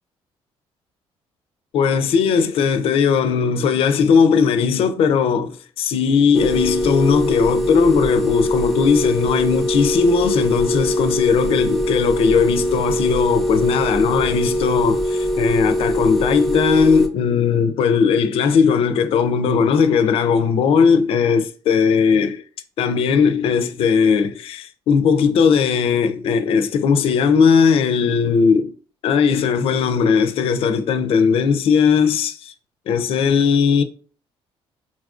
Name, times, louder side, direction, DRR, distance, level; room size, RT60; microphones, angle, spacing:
voice 1, 1.7-22.4 22.8-28.7 29.0-32.5 32.9-33.8, left 6 dB, 60° left, 0.4 m, -18 dB
sound 1, 6.3-17.1, equal, ahead, 0.4 m, -22 dB
4.0 x 2.4 x 2.4 m
cardioid pair, 120°, 11 cm